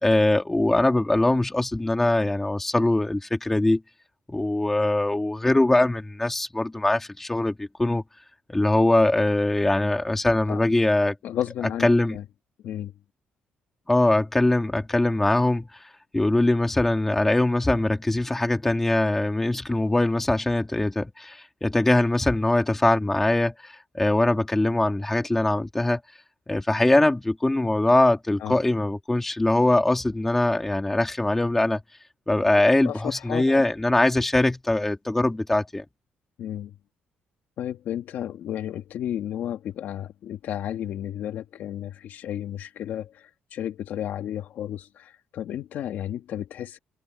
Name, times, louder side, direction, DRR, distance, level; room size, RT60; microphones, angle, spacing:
voice 1, 0.0-3.8 4.3-8.0 8.5-11.2 11.8-12.2 13.9-15.9 16.1-26.0 26.5-31.8 32.3-35.8, left 2 dB, 10° left, 2.4 m, -22 dB
voice 2, 11.2-12.2 12.6-12.9 28.4-28.5 32.8-33.6 36.4-36.8 37.6-46.8, left 11 dB, 60° left, 2.2 m, -33 dB
cardioid pair, 180°, 3 cm